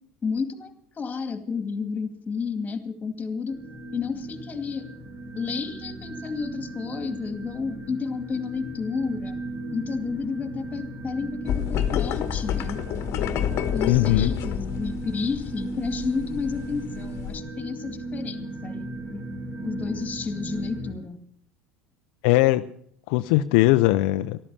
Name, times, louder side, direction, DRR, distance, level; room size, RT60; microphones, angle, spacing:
voice 1, 0.2-3.6 3.9-4.9 5.3-9.3 9.7-12.8 13.7-19.2 19.6-21.2, left 5 dB, 30° left, 9 dB, 2.3 m, -31 dB
sound 1, 3.5-20.9, right 2 dB, 30° right, 5.1 m, -36 dB
sound 2, 11.5-17.4, left 10 dB, 55° left, 1.3 m, -29 dB
voice 2, 13.8-14.3 22.2-22.6 23.1-24.4, left 17 dB, 75° left, 10 dB, 0.5 m, -19 dB
13.5 x 12.5 x 7.0 m, 0.63 s
hypercardioid pair, 85°, 5 cm